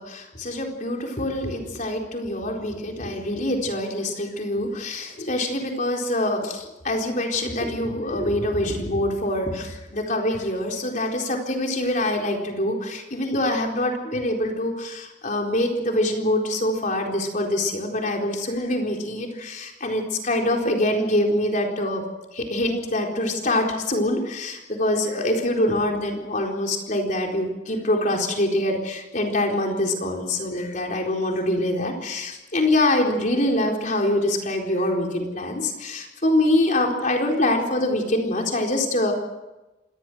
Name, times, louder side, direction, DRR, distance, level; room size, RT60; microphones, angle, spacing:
voice 1, 0.0-22.0 22.3-39.1, left 1 dB, 40° left, 1 dB, 4.2 m, -24 dB
26.0 x 19.5 x 6.3 m, 1.1 s
head